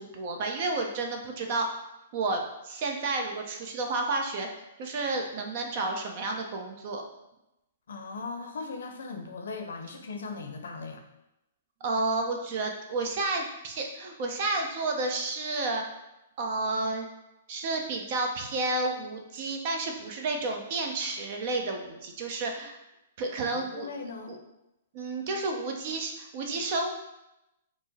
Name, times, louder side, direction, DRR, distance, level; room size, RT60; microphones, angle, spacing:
voice 1, 0.0-1.8 2.1-4.5 4.8-7.0 11.8-15.8 16.4-17.1 17.5-22.8 23.2-23.9 24.3-24.4 24.9-26.9, right 3 dB, 50° right, 3 dB, 0.7 m, -31 dB
voice 2, 7.9-11.1 23.5-24.4, left 4 dB, 75° left, 5 dB, 0.6 m, -38 dB
4.6 x 2.1 x 4.1 m, 0.90 s
hypercardioid pair, 125°, 0 cm